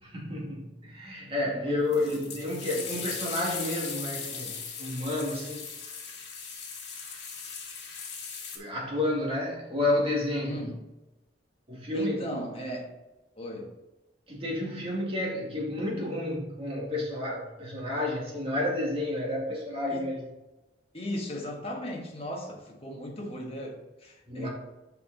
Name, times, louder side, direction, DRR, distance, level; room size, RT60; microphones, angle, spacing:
voice 1, 0.0-5.6 8.5-10.7 11.7-12.2 14.3-20.3 24.3-24.5, left 1 dB, 35° right, 2.2 m, -31 dB
voice 2, 1.5-2.3 10.4-10.8 11.9-12.9 13.4-13.7 19.9-20.1 20.9-24.5, equal, 35° left, 1.5 m, -37 dB
sound 1, 1.9-8.6, left 5 dB, 80° left, 1.8 m, -38 dB
6.5 x 5.5 x 4.1 m
head